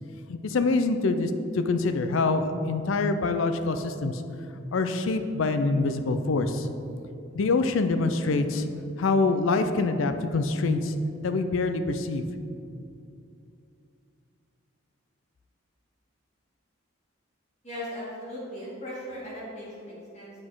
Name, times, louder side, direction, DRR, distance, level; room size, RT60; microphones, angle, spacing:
voice 1, 0.3-4.2 4.5-6.7 7.3-8.7 9.0-10.9 11.2-12.3, left 3 dB, 70° left, 8 dB, 0.4 m, -25 dB
voice 2, 17.6-20.5, equal, 35° left, -6 dB, 1.6 m, -38 dB
7.5 x 4.1 x 4.6 m, 2.6 s
head